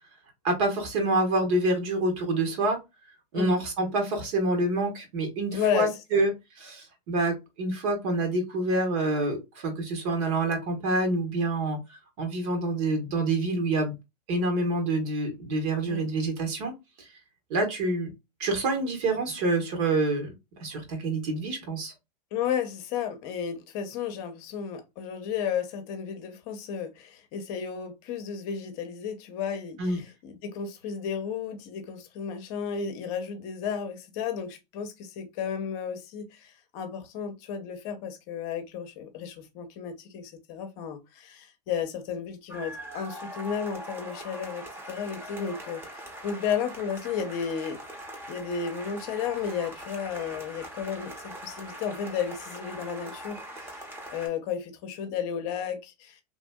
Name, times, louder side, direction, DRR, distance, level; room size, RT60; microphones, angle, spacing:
voice 1, 0.4-2.8 3.3-11.8 12.2-13.9 14.3-16.7 17.5-18.1 18.4-20.3 20.6-21.9 29.8-30.0, right 2 dB, 55° right, 1.3 m, -27 dB
voice 2, 5.5-6.2 15.9-16.1 22.3-47.8 48.3-56.2, left 7 dB, 50° left, 0.7 m, -33 dB
sound 1, 42.5-54.3, right 1 dB, 10° right, 0.9 m, -42 dB
3.0 x 2.6 x 2.2 m
hypercardioid pair, 115°, 21 cm